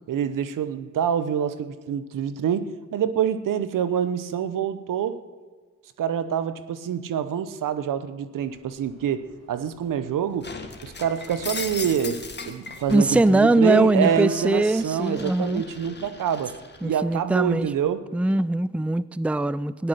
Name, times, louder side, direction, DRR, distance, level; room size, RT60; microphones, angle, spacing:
voice 1, 0.1-5.2 6.0-10.5 10.8-16.6 16.8-18.0, right 8 dB, 75° right, 0.8 m, -26 dB
sound 1, 8.4-17.8, right 6 dB, 50° right, 2.4 m, -44 dB
Shatter, 10.4-13.3 13.7-16.9, left 4 dB, 35° left, 1.7 m, -38 dB
voice 2, 12.9-15.6 16.8-17.7 18.1-19.9, right 2 dB, 5° right, 0.4 m, -21 dB
14.0 x 10.0 x 6.6 m
supercardioid pair, 50°, 32 cm